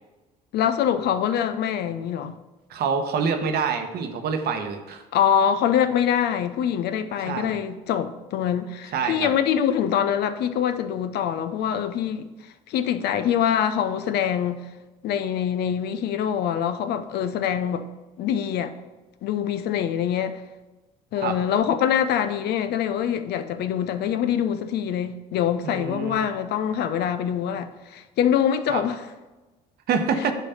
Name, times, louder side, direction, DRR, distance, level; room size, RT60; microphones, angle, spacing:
voice 1, 0.5-2.3 5.1-12.3 12.7-14.6 15.0-17.8 18.2-18.7 19.2-20.4 21.1-29.0 30.2-30.3, left 9 dB, 60° left, 0.6 m, -24 dB
voice 2, 2.7-5.0 7.2-7.6 8.9-9.3 21.2-21.4 25.6-26.3 28.7-28.8 29.9-30.3, right 6 dB, 55° right, 1.0 m, -26 dB
9.2 x 3.2 x 5.6 m
hypercardioid pair, 60°, 19 cm